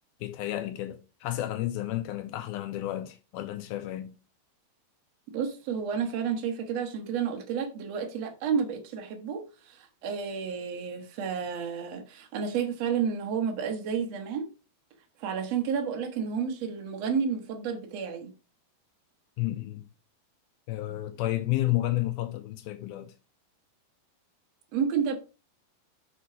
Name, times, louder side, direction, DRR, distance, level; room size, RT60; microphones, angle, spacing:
voice 1, 0.2-4.2 19.4-19.8 20.7-23.1, left 15 dB, 80° left, 2.3 m, -31 dB
voice 2, 5.3-14.4 15.2-18.3 24.7-25.1, right 7 dB, 70° right, 1.6 m, -31 dB
6.0 x 6.0 x 4.9 m
omnidirectional pair, 4.7 m